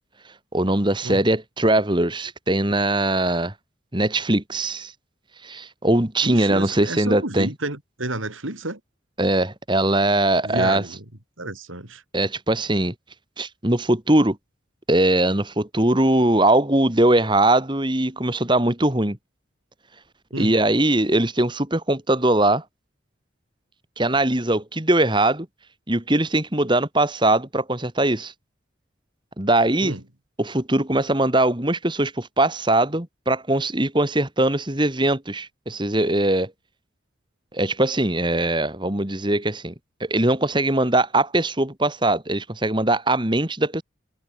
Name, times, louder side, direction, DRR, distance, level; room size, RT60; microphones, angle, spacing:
voice 1, 0.2-3.5 3.9-4.9 5.4-7.5 9.2-10.9 12.1-12.9 13.4-14.4 14.9-19.2 20.4-22.6 24.0-25.5 25.9-28.3 29.4-30.0 30.4-36.5 37.5-39.7 40.0-43.8, right 1 dB, 25° right, 2.2 m, -21 dB
voice 2, 6.2-8.8 10.4-11.0 11.4-12.0 20.3-20.5 29.8-30.0, right 2 dB, 85° right, 4.9 m, -30 dB
head